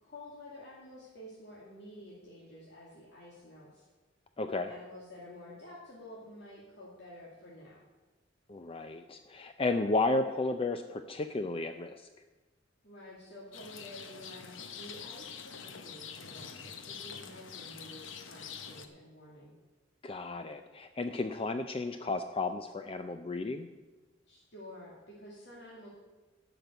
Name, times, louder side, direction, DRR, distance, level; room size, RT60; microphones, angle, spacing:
voice 1, 0.0-3.9 4.6-7.8 12.8-19.5 24.3-25.9, left 1 dB, 60° left, -6 dB, 2.5 m, -50 dB
voice 2, 4.4-4.7 8.5-12.0 20.0-23.7, left 2 dB, 30° left, 8 dB, 0.5 m, -33 dB
Rain, 13.5-18.9, left 7 dB, 85° left, 0.9 m, -45 dB
12.0 x 6.0 x 8.1 m, 1.2 s
head